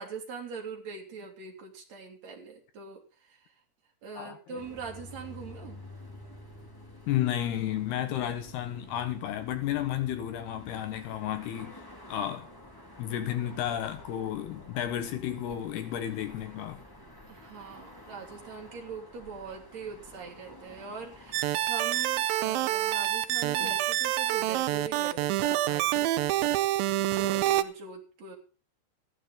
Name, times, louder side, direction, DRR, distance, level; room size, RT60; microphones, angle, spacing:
voice 1, 0.0-3.5 4.0-5.8 17.3-26.1 26.4-26.5 27.0-28.4, right 5 dB, 40° right, 3.7 m, -42 dB
voice 2, 4.2-4.6 7.1-12.5 13.0-16.8 23.6-23.7, left 11 dB, 70° left, 2.9 m, -32 dB
sound 1, 4.6-21.5, left 1 dB, 10° left, 0.9 m, -49 dB
sound 2, 21.3-27.6, right 14 dB, 90° right, 2.0 m, -27 dB
15.0 x 12.0 x 3.9 m
omnidirectional pair, 5.1 m